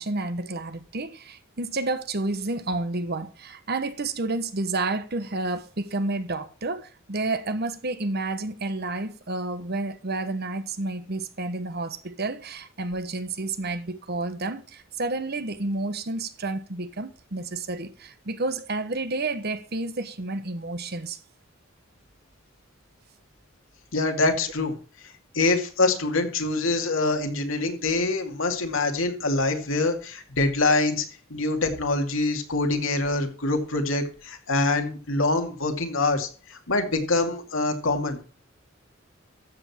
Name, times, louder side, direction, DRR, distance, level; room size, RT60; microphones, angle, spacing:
voice 1, 0.0-21.2, right 2 dB, 50° right, 1.2 m, -30 dB
voice 2, 23.9-24.7 25.3-38.3, left 2 dB, 80° left, 2.5 m, -25 dB
13.5 x 8.0 x 4.4 m
head